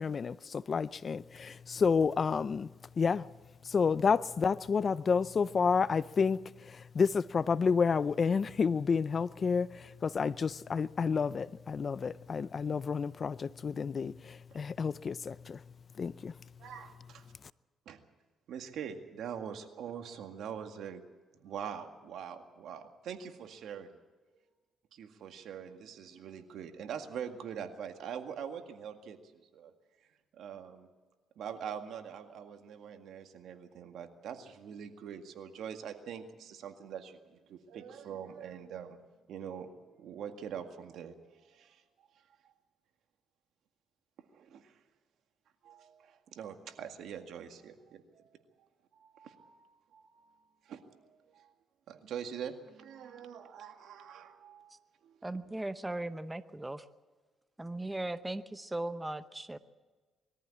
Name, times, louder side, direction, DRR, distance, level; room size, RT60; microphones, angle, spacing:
voice 1, 0.0-2.7 3.0-3.3 3.6-15.6 16.0-16.3, left 5 dB, 40° left, 0.5 m, -30 dB
voice 2, 16.6-17.3 17.9-18.0 18.5-21.0 21.4-23.9 24.9-29.7 30.3-30.9 31.4-39.0 39.3-41.8 42.4-42.5 44.3-44.8 45.6-48.7 48.9-51.5 51.9-55.2, right 8 dB, 75° right, 1.9 m, -44 dB
voice 3, 55.2-56.8 57.6-59.6, right 2 dB, 10° right, 0.8 m, -38 dB
21.5 x 14.0 x 8.5 m
cardioid pair, 90°, 0 cm